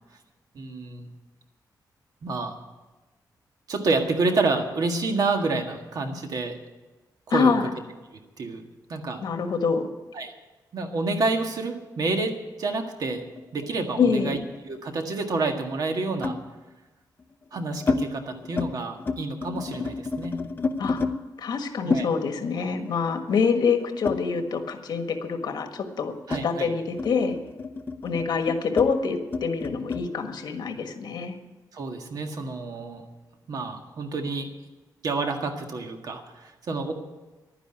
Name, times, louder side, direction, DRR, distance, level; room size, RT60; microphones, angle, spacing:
voice 1, 0.5-1.1 2.2-2.5 3.7-6.6 7.3-7.5 8.4-8.6 8.9-9.2 10.1-10.3 10.7-12.3 12.6-13.2 13.5-14.4 14.6-16.4 17.5-20.4 21.8-22.1 26.3-26.7 31.7-33.0 33.5-34.5 35.0-37.0, right 3 dB, 60° right, 4 dB, 1.8 m, -28 dB
voice 2, 7.3-7.7 9.2-9.9 14.0-14.4 20.8-21.0 21.4-26.1 26.4-27.4 28.0-31.4, left 5 dB, 70° left, 6 dB, 1.6 m, -25 dB
sound 1, 13.4-14.9 16.2-16.5 17.2-18.0 18.4-18.7 19.0-21.1 21.9-24.8 25.1-30.1, left 4 dB, 30° left, 0.7 m, -31 dB
11.5 x 10.0 x 8.8 m, 1.2 s
wide cardioid pair, 140°, 7 cm